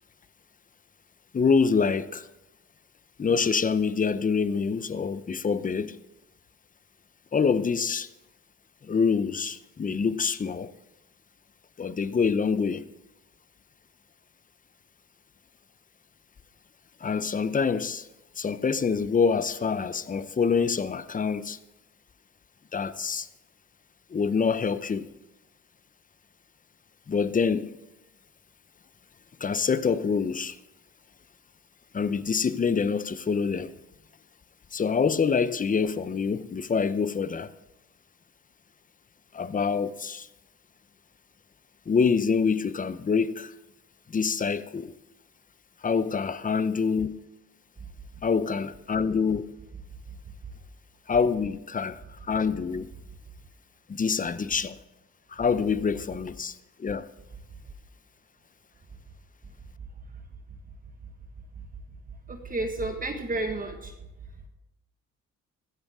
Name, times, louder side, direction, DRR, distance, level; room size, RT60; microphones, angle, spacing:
voice 1, 1.3-2.3 3.2-6.0 7.3-8.1 8.8-10.7 11.8-12.8 17.0-18.1 18.4-21.6 22.7-23.3 24.1-25.1 27.1-27.7 29.4-30.6 31.9-33.8 34.7-37.5 39.3-40.3 41.9-43.5 44.1-44.9 45.8-47.2 48.2-49.5 51.1-52.0 52.3-52.9 53.9-54.8 55.3-57.1, left 5 dB, 25° left, 0.7 m, -26 dB
voice 2, 62.3-63.9, right 2 dB, 30° right, 1.6 m, -31 dB
15.5 x 13.5 x 3.7 m
cardioid pair, 90°, 30 cm